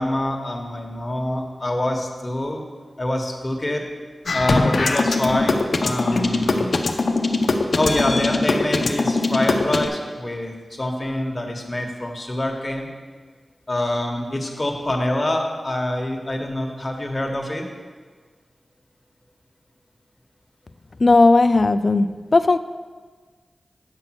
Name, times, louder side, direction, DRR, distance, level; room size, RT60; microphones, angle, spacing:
voice 1, 0.0-2.6 3.0-3.8 4.3-6.7 7.7-12.9 13.7-17.6, left 1 dB, 30° left, 2 dB, 1.4 m, -25 dB
sound 1, 4.3-9.9, left 3 dB, 65° left, 0.7 m, -21 dB
voice 2, 21.0-22.6, left 3 dB, 50° left, 12 dB, 0.3 m, -16 dB
8.7 x 5.7 x 6.0 m, 1.5 s
wide cardioid pair, 60°, 0 cm